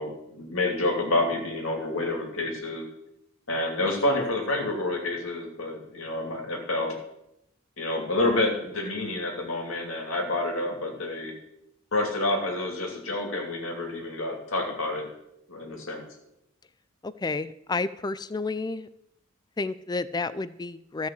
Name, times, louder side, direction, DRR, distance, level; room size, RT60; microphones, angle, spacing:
voice 1, 0.0-2.8 3.5-7.0 7.8-11.3 11.9-15.1 15.5-16.0, left 2 dB, 65° left, 0 dB, 2.6 m, -28 dB
voice 2, 17.0-18.9 19.6-21.1, left 3 dB, 20° left, 16 dB, 0.4 m, -31 dB
14.0 x 5.7 x 7.6 m, 0.82 s
head